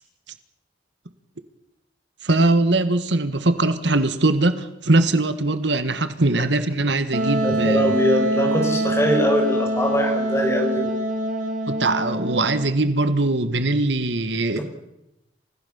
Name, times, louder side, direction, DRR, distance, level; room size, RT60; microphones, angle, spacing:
voice 1, 2.2-7.8 11.7-14.6, right 2 dB, 75° right, 1.7 m, -21 dB
Wind instrument woodwind instrument, 7.1-12.7, right 1 dB, 45° right, 2.7 m, -24 dB
voice 2, 7.4-10.9, equal, 15° left, 6.0 m, -22 dB
30.0 x 16.0 x 7.1 m
head